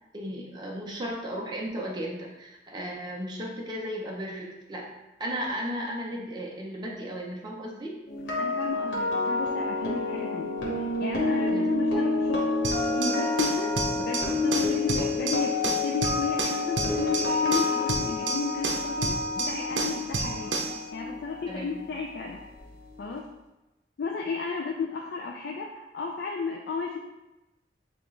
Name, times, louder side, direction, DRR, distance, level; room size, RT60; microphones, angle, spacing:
voice 1, 0.1-4.9 5.2-8.0 11.4-11.7 21.4-21.8, equal, 25° right, -3 dB, 0.6 m, -35 dB
sound 1, 8.1-22.1 22.4-22.7, left 3 dB, 90° left, 1.4 m, -29 dB
voice 2, 8.4-12.5 12.9-20.6 20.9-22.4 23.0-23.2 24.0-27.0, left 4 dB, 60° left, 0 dB, 0.4 m, -33 dB
sound 2, 12.6-20.8, right 3 dB, 75° right, 0.6 m, -31 dB
7.0 x 2.4 x 3.1 m, 0.98 s
head